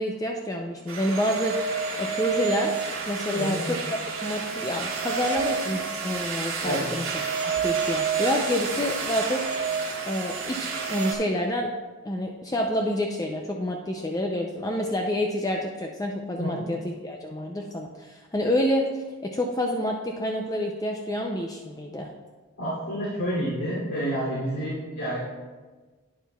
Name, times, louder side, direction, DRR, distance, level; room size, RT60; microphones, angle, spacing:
voice 1, 0.0-2.7 3.1-7.0 7.4-9.5 10.1-11.7 12.0-16.8 17.0-18.9 19.2-22.1, left 1 dB, 15° left, 1 dB, 0.4 m, -28 dB
sound 1, 0.9-11.1, right 5 dB, 75° right, 1.6 m, -29 dB
voice 2, 3.3-3.6 6.6-6.8 16.4-16.6 22.6-25.2, equal, 85° left, -8 dB, 2.8 m, -29 dB
11.0 x 9.2 x 2.3 m, 1.3 s
head